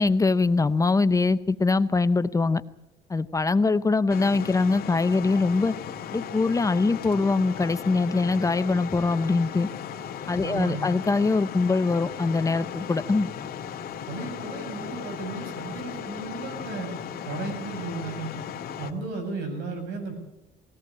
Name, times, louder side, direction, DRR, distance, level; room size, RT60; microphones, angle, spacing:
voice 1, 0.0-2.6 3.1-5.7 6.1-9.7 10.3-13.3, left 3 dB, 20° left, 12 dB, 0.7 m, -23 dB
sound 1, 4.1-18.9, left 8 dB, 65° left, 2.0 m, -36 dB
voice 2, 10.4-10.9 14.1-16.9 17.3-18.4 18.8-20.1, right 3 dB, 80° right, 6 dB, 7.3 m, -34 dB
20.5 x 17.0 x 8.5 m, 0.90 s
cardioid pair, 110°, 17 cm